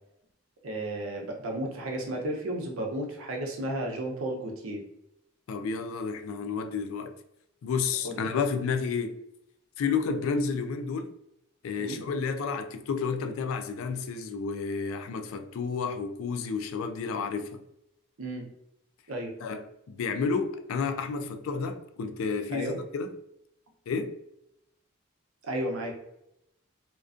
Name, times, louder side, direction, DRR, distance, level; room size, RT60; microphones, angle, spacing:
voice 1, 0.6-4.8 8.0-8.2 11.8-12.0 18.2-18.5 19.1-19.3 22.5-22.7 25.4-25.9, right 1 dB, 90° right, 0.6 m, -33 dB
voice 2, 5.5-7.1 7.6-9.2 9.8-11.1 11.6-17.6 19.4-23.1 23.9-24.2, left 5 dB, 80° left, 0.3 m, -31 dB
2.4 x 2.2 x 2.4 m
head